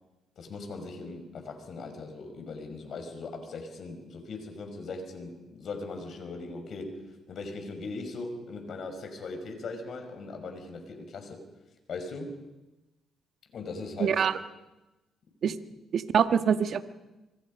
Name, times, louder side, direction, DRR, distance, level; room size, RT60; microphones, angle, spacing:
voice 1, 0.4-11.4 11.9-12.4 13.5-14.3 15.5-15.6, left 3 dB, 60° left, 5 dB, 5.5 m, -39 dB
voice 2, 14.0-14.3 15.4-15.5 15.9-16.8, right 7 dB, 60° right, 9 dB, 1.5 m, -24 dB
26.0 x 24.5 x 5.4 m, 1.0 s
cardioid pair, 90°, 0 cm